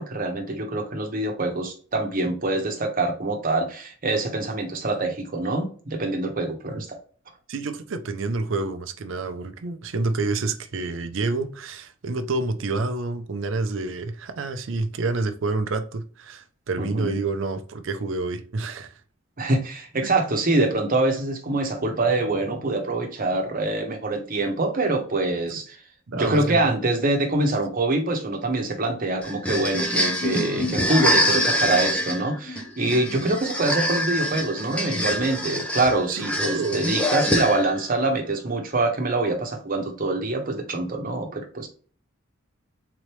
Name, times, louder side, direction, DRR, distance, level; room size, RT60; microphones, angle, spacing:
voice 1, 0.0-7.0 16.8-17.1 19.4-25.8 26.1-41.7, right 2 dB, 45° right, 4 dB, 1.0 m, -25 dB
voice 2, 7.5-19.0 26.1-26.7 33.1-33.3 36.1-36.3 36.5-36.9 37.2-37.6, right 3 dB, 65° right, 9 dB, 0.5 m, -28 dB
sound 1, 29.2-37.9, equal, 5° left, 0.6 m, -25 dB
sound 2, 30.2-34.1 34.3-34.4 34.7-34.8, left 3 dB, 45° left, 1.2 m, -34 dB
3.8 x 3.2 x 3.1 m, 0.41 s
head